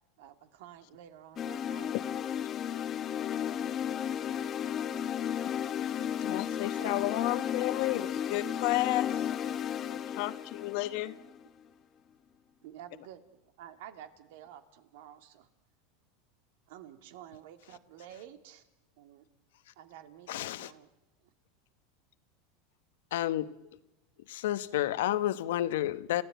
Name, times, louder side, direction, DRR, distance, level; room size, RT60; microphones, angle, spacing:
voice 1, 0.2-2.0 6.7-7.0 12.6-15.5 16.7-18.6 19.0-19.2 19.8-20.9, right 11 dB, 70° right, 2.3 m, -50 dB
sound 1, 1.4-11.5, left 9 dB, 30° left, 1.2 m, -34 dB
voice 2, 6.2-9.3 9.9-11.1, left 18 dB, 60° left, 1.1 m, -32 dB
voice 3, 20.3-20.7 23.1-23.5 24.3-26.2, left 13 dB, 80° left, 1.1 m, -30 dB
30.0 x 15.5 x 9.3 m
supercardioid pair, 130°, 0 cm